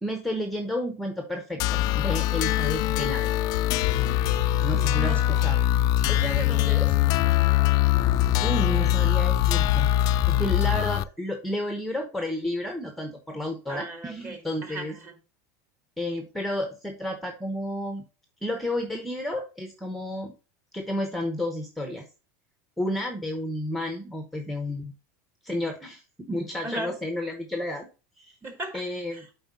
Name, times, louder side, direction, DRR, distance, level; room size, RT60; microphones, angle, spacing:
voice 1, 0.0-3.4 4.6-5.6 8.4-9.9 10.3-14.9 16.0-18.0 18.4-20.3 20.7-22.0 22.8-24.9 25.4-27.9 28.2-28.3 28.7-29.2, left 1 dB, ahead, 1.0 m, -31 dB
sound 1, 1.6-11.0, left 13 dB, 45° left, 0.4 m, -22 dB
voice 2, 4.6-5.4 6.1-6.9 13.7-15.1 26.6-26.9 28.4-28.8 29.1-29.3, right 2 dB, 20° right, 2.1 m, -36 dB
7.8 x 4.5 x 4.0 m
supercardioid pair, 135°, 9 cm